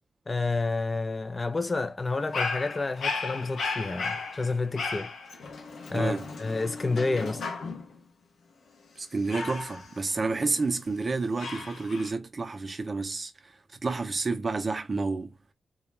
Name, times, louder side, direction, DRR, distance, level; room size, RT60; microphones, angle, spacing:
voice 1, 0.3-5.1 5.9-7.5, left 3 dB, 30° left, 0.3 m, -29 dB
Dog, 2.1-8.0 9.3-10.8 11.4-12.1, left 4 dB, 80° left, 0.6 m, -35 dB
voice 2, 5.9-6.3 9.0-13.5 13.8-15.3, right 3 dB, 35° right, 0.4 m, -30 dB
2.3 x 2.0 x 3.0 m
wide cardioid pair, 100°, 0 cm